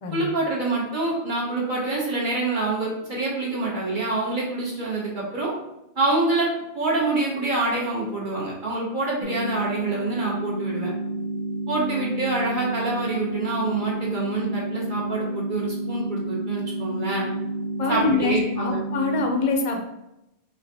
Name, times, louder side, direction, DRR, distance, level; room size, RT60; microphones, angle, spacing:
voice 1, 0.1-5.5 6.0-6.5 6.7-10.9 11.7-17.3 17.9-18.8, right 2 dB, 55° right, -4 dB, 1.0 m, -26 dB
sound 1, 9.2-19.2, right 1 dB, 90° right, 1.4 m, -30 dB
voice 2, 17.8-19.8, left 3 dB, 45° left, 3 dB, 0.5 m, -24 dB
5.4 x 2.5 x 2.7 m, 0.89 s
omnidirectional pair, 1.1 m